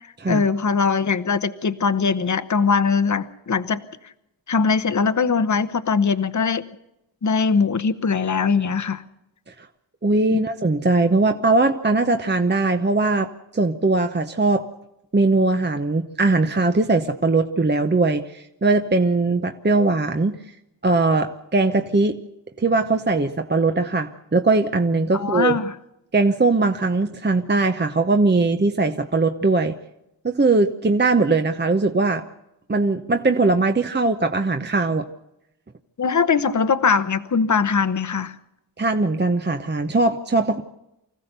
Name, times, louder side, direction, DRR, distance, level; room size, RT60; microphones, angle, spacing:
voice 1, 0.3-3.8 4.5-6.6 7.2-9.0 10.3-10.4 25.1-25.7 36.0-38.3, left 5 dB, 40° left, 1.0 m, -21 dB
voice 2, 10.0-14.7 15.1-20.4 20.8-22.2 22.6-25.6 26.1-29.8 30.2-32.2 32.7-35.1 38.8-40.6, right 3 dB, 25° right, 0.8 m, -20 dB
25.0 x 15.5 x 6.8 m
wide cardioid pair, 100°, 45 cm